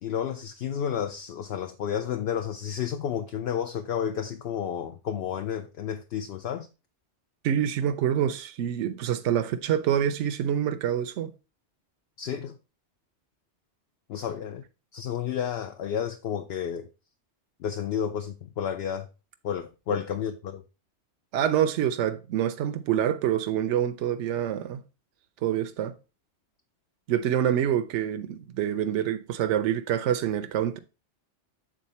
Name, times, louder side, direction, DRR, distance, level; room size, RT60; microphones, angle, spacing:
voice 1, 0.0-6.7 12.2-12.5 14.1-14.6 14.9-16.9 17.6-19.1 19.4-20.6, left 9 dB, 65° left, 0.8 m, -31 dB
voice 2, 7.4-11.3 19.9-20.0 21.3-24.8 25.4-26.0 27.1-30.8, right 10 dB, 80° right, 0.9 m, -26 dB
7.3 x 3.9 x 4.1 m
omnidirectional pair, 1.2 m